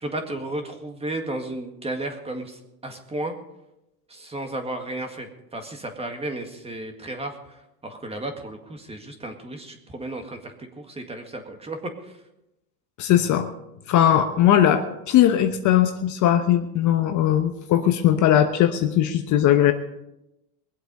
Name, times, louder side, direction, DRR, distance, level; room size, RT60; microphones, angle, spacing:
voice 1, 0.0-3.3 4.1-12.2, right 1 dB, 10° right, 5 dB, 1.9 m, -33 dB
voice 2, 13.0-13.5 13.9-19.7, left 11 dB, 35° left, 7 dB, 1.0 m, -19 dB
22.0 x 8.1 x 5.3 m, 0.90 s
supercardioid pair, 125°, 49 cm